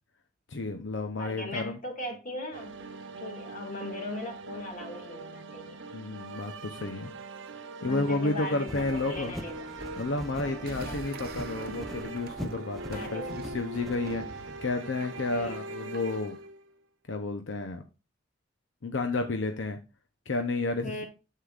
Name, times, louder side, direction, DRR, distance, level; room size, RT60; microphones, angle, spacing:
voice 1, 0.5-1.8 5.9-7.1 7.8-9.3 10.0-14.2 14.6-16.4 17.1-17.8 18.8-19.8 20.3-21.0, left 2 dB, 80° left, 0.8 m, -31 dB
voice 2, 1.2-2.7 3.2-5.8 7.8-9.5 10.4-11.0 12.9-13.4 15.3-15.6 20.8-21.1, left 1 dB, 45° left, 2.2 m, -38 dB
sound 1, 2.5-16.7, right 3 dB, 85° right, 0.9 m, -42 dB
sound 2, 8.7-14.2, equal, ahead, 0.8 m, -43 dB
sound 3, 10.6-16.5, right 3 dB, 55° right, 0.8 m, -46 dB
8.2 x 7.6 x 2.5 m
head